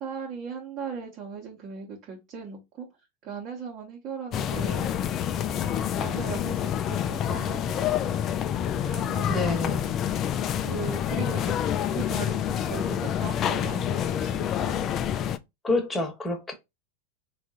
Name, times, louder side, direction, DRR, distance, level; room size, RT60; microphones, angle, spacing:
voice 1, 0.0-2.9 3.2-4.9 6.0-8.3 8.9-9.9 10.6-11.5 11.9-14.8, right 5 dB, 45° right, 1.1 m, -38 dB
sound 1, 4.3-15.4, left 9 dB, 35° left, 0.4 m, -28 dB
voice 2, 9.3-9.8 15.6-16.5, left 2 dB, 15° left, 1.2 m, -27 dB
3.6 x 2.6 x 3.7 m
hypercardioid pair, 95°, 0 cm